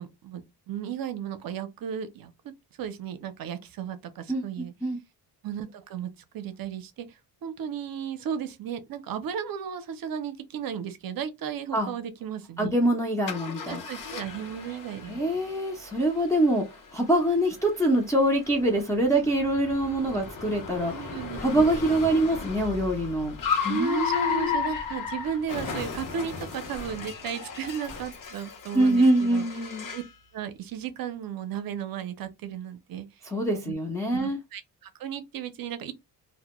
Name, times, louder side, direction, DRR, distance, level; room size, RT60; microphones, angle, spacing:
voice 1, 0.0-2.3 2.8-4.7 5.4-12.7 13.7-15.5 19.1-19.3 20.9-21.6 23.7-29.5 29.9-30.0 30.3-33.1 33.6-33.8 34.1-35.9, right 8 dB, 60° right, 0.6 m, -35 dB
voice 2, 4.3-5.0 11.7-11.9 12.6-13.8 15.1-16.7 16.9-23.3 23.6-24.6 28.7-29.9 33.3-34.4, right 1 dB, 10° left, 0.5 m, -25 dB
Car, 13.3-30.1, left 6 dB, 55° left, 0.7 m, -35 dB
2.1 x 2.1 x 2.9 m
cardioid pair, 120°, 40 cm